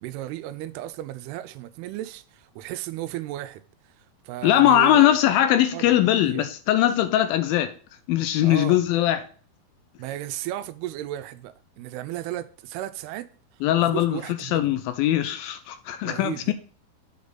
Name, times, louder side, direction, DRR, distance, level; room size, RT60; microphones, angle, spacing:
voice 1, 0.0-3.6 4.0-5.2 5.7-5.9 6.2-6.5 8.4-8.8 10.0-13.3 13.8-14.8 16.0-16.5, right 14 dB, 85° right, 2.6 m, -35 dB
voice 2, 4.4-7.7 8.1-9.3 13.6-16.5, left 12 dB, 80° left, 2.2 m, -21 dB
7.9 x 5.2 x 3.9 m
omnidirectional pair, 4.5 m